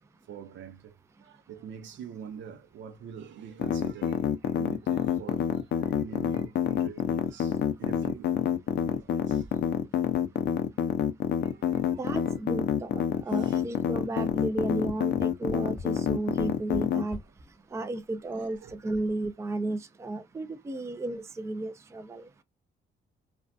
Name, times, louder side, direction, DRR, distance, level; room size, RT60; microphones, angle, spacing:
voice 1, 0.3-0.9 1.2-8.3 8.8-9.5 11.4-12.4 13.3-13.6 18.6-18.7, right 7 dB, 70° right, 0.6 m, -45 dB
sound 1, 3.6-17.0, left 9 dB, 60° left, 0.4 m, -27 dB
voice 2, 12.0-17.2 17.7-22.3, right 2 dB, 15° right, 0.4 m, -33 dB
Tap, 14.3-17.3 18.1-18.2 18.5-18.6, left 3 dB, 5° left, 1.1 m, -43 dB
2.5 x 2.2 x 2.2 m
cardioid pair, 90°, 20 cm